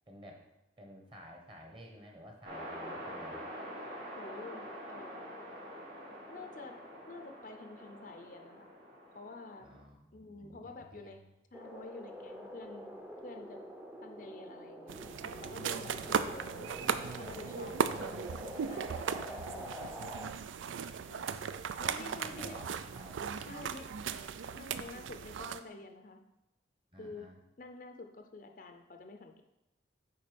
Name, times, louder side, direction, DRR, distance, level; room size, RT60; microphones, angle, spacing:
voice 1, 0.1-0.4 0.8-3.4 9.6-11.2 15.9-17.2 17.6-18.0 21.8-23.2 24.7-25.2 26.9-27.4, equal, 25° right, 1 dB, 1.2 m, -53 dB
sound 1, 2.4-9.8, equal, 50° right, 3.0 m, -46 dB
voice 2, 4.2-5.4 6.3-6.8 7.1-8.7 9.1-9.7 10.1-11.2 11.5-13.0 13.2-13.6 14.0-14.9 15.2-16.9 17.2-20.1 21.1-21.3 21.8-22.6 23.5-23.9 24.5-26.2 27.0-27.3 27.6-29.4, left 3 dB, 45° left, 5 dB, 0.5 m, -49 dB
sound 2, 11.5-20.3, equal, 10° right, 0.6 m, -46 dB
sound 3, 14.9-25.6, right 6 dB, 90° right, 0.4 m, -37 dB
8.7 x 3.8 x 5.2 m, 0.91 s
head